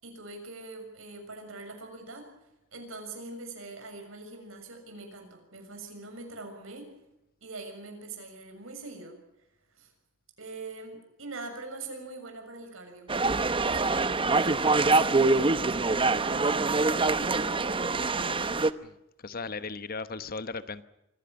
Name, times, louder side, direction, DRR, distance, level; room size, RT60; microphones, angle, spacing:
voice 1, 0.0-2.3 2.7-6.9 7.4-9.2 9.8-9.9 10.4-13.1 13.6-18.5, right 2 dB, 80° right, 4 dB, 6.7 m, -43 dB
sound 1, 13.1-18.7, right 3 dB, 25° right, 0.9 m, -25 dB
voice 2, 19.2-20.8, left 4 dB, 45° left, 13 dB, 1.1 m, -36 dB
25.0 x 16.0 x 8.8 m, 0.87 s
head